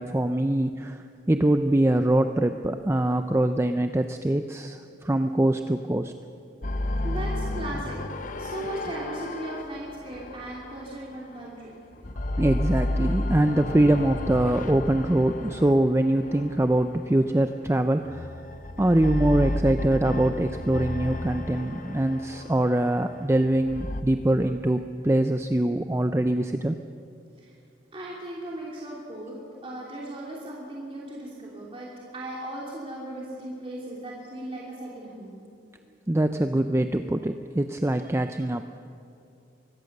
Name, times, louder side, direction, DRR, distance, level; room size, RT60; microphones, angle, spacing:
voice 1, 0.0-6.1 12.4-18.3 18.8-26.8 36.1-38.6, right 1 dB, 15° right, 7 dB, 0.5 m, -23 dB
sound 1, 6.6-11.6 11.9-17.2 18.0-24.0, left 1 dB, 45° left, 0.9 m, -32 dB
voice 2, 7.0-8.0 8.4-11.7 27.4-27.5 27.9-31.9 32.1-35.4, right 1 dB, 30° right, -4 dB, 2.9 m, -37 dB
23.5 x 17.0 x 6.6 m, 2.6 s
head